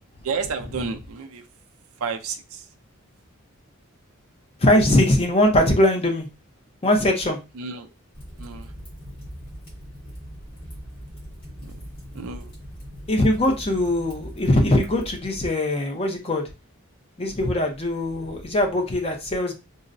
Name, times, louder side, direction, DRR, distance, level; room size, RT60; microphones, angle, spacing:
voice 1, 0.2-1.5 2.0-2.7 7.5-7.9 8.4-8.7 11.6-11.7 12.1-12.6, right 5 dB, 80° right, 0.5 m, -31 dB
voice 2, 4.6-6.3 6.8-7.4 13.1-16.5 17.2-19.5, left 1 dB, 25° left, 0.6 m, -21 dB
Fire, 8.1-15.2, equal, 45° left, 1.8 m, -40 dB
3.8 x 2.0 x 2.5 m
head